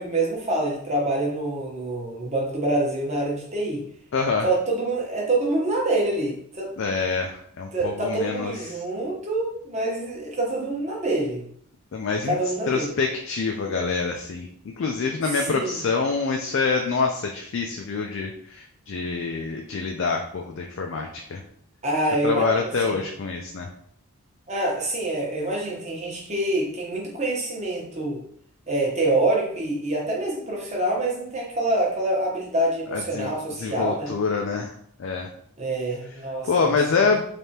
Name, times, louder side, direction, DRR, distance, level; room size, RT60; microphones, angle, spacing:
voice 1, 0.0-3.8 4.4-6.8 7.7-11.4 12.2-12.9 15.4-15.8 21.8-23.0 24.5-28.2 28.7-34.2 35.6-36.8 37.0-37.2, right 2 dB, 30° right, -2 dB, 0.9 m, -26 dB
voice 2, 4.1-4.4 6.8-8.5 11.9-12.3 12.7-14.5 14.8-21.4 22.2-23.7 32.9-33.3 33.6-34.7 35.0-35.3 36.5-37.2, left 4 dB, 60° left, 2 dB, 0.4 m, -26 dB
3.4 x 3.3 x 2.8 m, 0.65 s
head